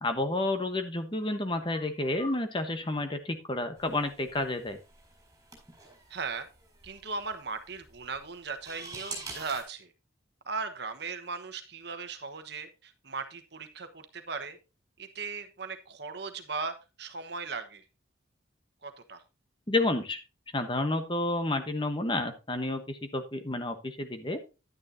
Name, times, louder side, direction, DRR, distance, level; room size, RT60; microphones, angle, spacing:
voice 1, 0.0-4.8 19.7-20.2 20.5-24.4, left 2 dB, 25° left, 7 dB, 1.1 m, -30 dB
sound 1, 3.8-9.6, right 3 dB, 15° right, 4.5 m, -46 dB
voice 2, 6.1-6.5 6.8-9.9 10.4-14.6 15.0-17.8 18.8-19.2, right 4 dB, 55° right, 8 dB, 1.2 m, -38 dB
11.0 x 9.5 x 2.7 m, 0.29 s
head